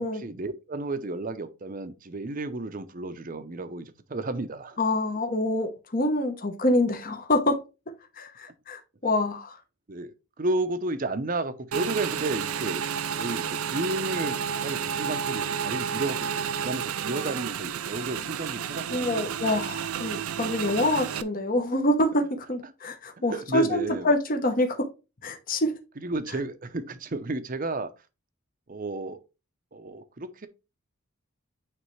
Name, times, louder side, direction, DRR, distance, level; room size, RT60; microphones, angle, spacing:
voice 1, 0.0-4.8 9.9-12.8 13.1-19.4 22.6-24.1 26.0-27.9 28.7-29.2 29.7-30.5, right 2 dB, 40° right, 0.7 m, -32 dB
voice 2, 4.8-7.6 8.2-9.6 18.9-24.8 25.2-25.7, left 1 dB, 40° left, 1.0 m, -26 dB
Motorcycle / Engine, 11.7-21.2, right 8 dB, 85° right, 0.5 m, -31 dB
9.4 x 3.3 x 3.2 m
head